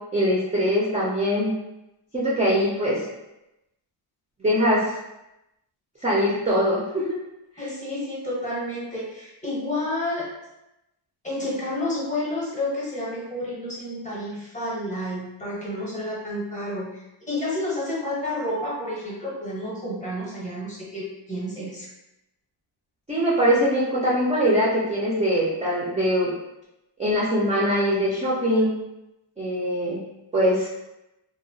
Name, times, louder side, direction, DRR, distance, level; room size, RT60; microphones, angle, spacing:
voice 1, 0.1-1.5 2.1-3.1 4.4-5.0 6.0-7.2 23.1-26.3 27.0-28.7 29.4-30.0 30.3-30.7, equal, 15° right, -7 dB, 0.3 m, -22 dB
voice 2, 7.6-10.3 11.2-21.9, left 1 dB, 15° left, -6 dB, 0.7 m, -30 dB
2.9 x 2.1 x 2.6 m, 0.91 s
wide cardioid pair, 170°, 47 cm